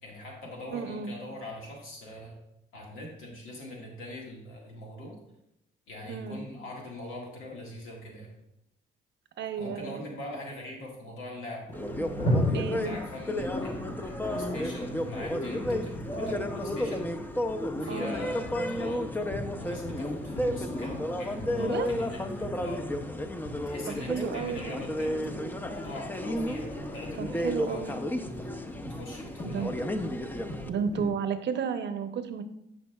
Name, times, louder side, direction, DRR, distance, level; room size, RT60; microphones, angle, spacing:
voice 1, 0.0-2.4 2.7-5.2 5.9-8.3 9.6-11.8 12.8-17.1 17.8-22.9 23.7-28.0 28.9-29.7, left 1 dB, 85° left, -2 dB, 1.8 m, -42 dB
voice 2, 0.7-1.2 6.1-6.4 9.4-10.0 12.5-13.0 17.8-18.1 21.6-21.9 24.0-24.8 27.2-27.9 29.4-29.7 30.7-32.4, right 6 dB, 65° right, 8 dB, 0.8 m, -33 dB
sound 1, 11.7-31.1, left 1 dB, 35° left, 1.2 m, -36 dB
sound 2, 11.7-30.7, left 1 dB, 10° left, 0.6 m, -33 dB
11.5 x 5.3 x 2.4 m, 0.79 s
cardioid pair, 90°, 20 cm